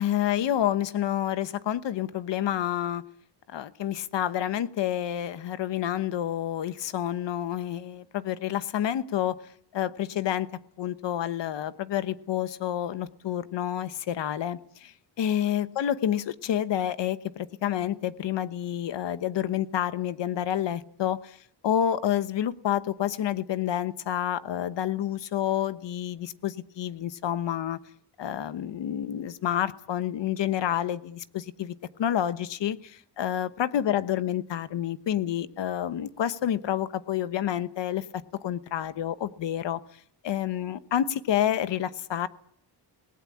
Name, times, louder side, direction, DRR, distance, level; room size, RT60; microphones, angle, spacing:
voice 1, 0.0-3.0 3.5-9.4 9.7-10.5 10.8-21.4 21.6-27.8 28.2-38.0 38.4-39.8 40.2-42.3, left 11 dB, 85° left, 1.2 m, -29 dB
26.5 x 19.0 x 8.6 m
wide cardioid pair, 170°, 42 cm